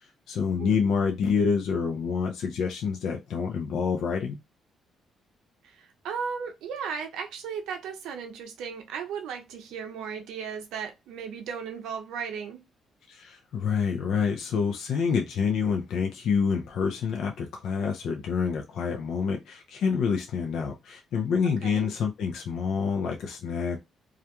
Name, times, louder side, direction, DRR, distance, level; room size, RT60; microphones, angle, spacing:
voice 1, 0.3-4.4 13.1-23.8, left 6 dB, 75° left, 0.4 m, -27 dB
voice 2, 5.6-12.6 21.6-21.9, right 6 dB, 90° right, 0.5 m, -36 dB
2.3 x 2.2 x 2.8 m
cardioid pair, 90°, 0 cm